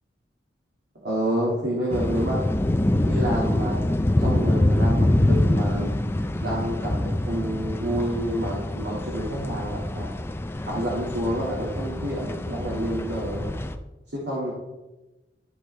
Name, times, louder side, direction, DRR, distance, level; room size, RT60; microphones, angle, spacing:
voice 1, 1.0-2.5 3.1-3.8 4.2-5.9 6.4-10.1 10.7-13.5 14.1-14.5, equal, 70° right, -6 dB, 1.9 m, -28 dB
sound 1, 1.9-13.8, left 1 dB, 15° left, 0.4 m, -25 dB
13.0 x 4.9 x 3.2 m, 1.1 s
head